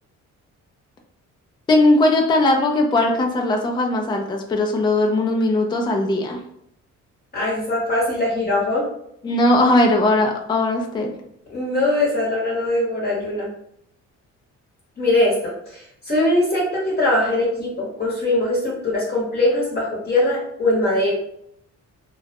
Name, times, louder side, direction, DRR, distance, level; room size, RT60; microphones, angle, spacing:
voice 1, 1.7-6.4 9.2-11.1, left 2 dB, 15° left, 1 dB, 0.4 m, -19 dB
voice 2, 7.3-8.8 11.5-13.5 15.0-21.1, left 1 dB, 35° left, -5 dB, 0.9 m, -21 dB
2.3 x 2.0 x 2.8 m, 0.74 s
cardioid pair, 90°, 30 cm